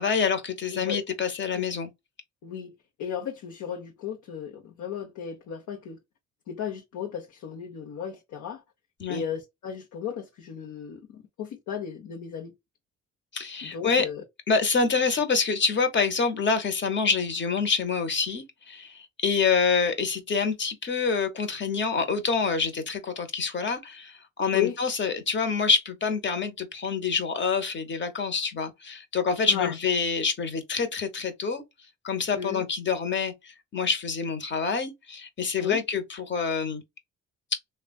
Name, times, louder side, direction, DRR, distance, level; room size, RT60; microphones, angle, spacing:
voice 1, 0.0-1.9 9.0-9.2 13.3-14.1 14.5-31.6 32.0-36.8 37.5-37.6, left 5 dB, 40° left, 1.0 m, -26 dB
voice 2, 2.4-2.7 3.0-6.0 6.5-8.6 9.1-12.5 13.6-14.2 24.5-24.8 29.5-29.7 32.3-32.6 35.6-35.8, left 8 dB, 75° left, 0.9 m, -34 dB
3.2 x 2.4 x 2.3 m
cardioid pair, 90°, 30 cm